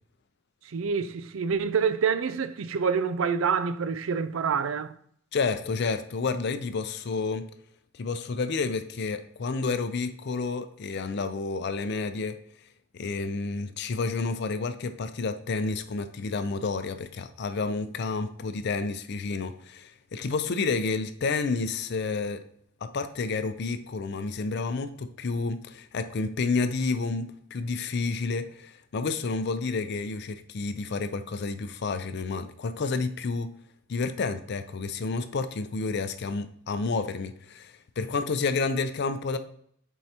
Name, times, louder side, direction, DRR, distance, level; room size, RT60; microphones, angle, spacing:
voice 1, 0.7-4.9, right 6 dB, 85° right, 0.4 m, -27 dB
voice 2, 5.3-7.5 8.0-12.4 12.9-22.4 22.8-33.5 33.9-39.4, left 4 dB, 60° left, 0.5 m, -30 dB
7.4 x 4.6 x 2.8 m
head